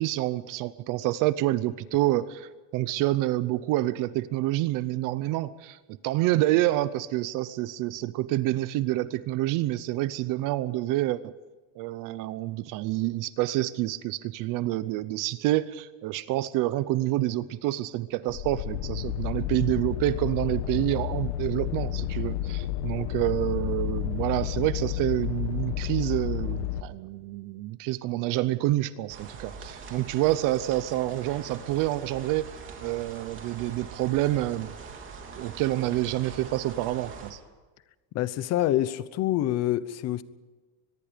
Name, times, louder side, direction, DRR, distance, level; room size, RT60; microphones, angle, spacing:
voice 1, 0.0-11.3 11.8-32.5 32.8-34.7 35.4-37.4, right 16 dB, 45° right, 16 dB, 0.7 m, -28 dB
sound 1, 18.3-26.8, left 13 dB, 85° left, 1.4 m, -31 dB
sound 2, 29.1-37.3, right 5 dB, 25° right, 3.2 m, -43 dB
voice 2, 38.1-40.2, left 13 dB, 35° left, 15 dB, 0.9 m, -26 dB
24.0 x 21.5 x 5.1 m, 1.3 s
cardioid pair, 180°, 47 cm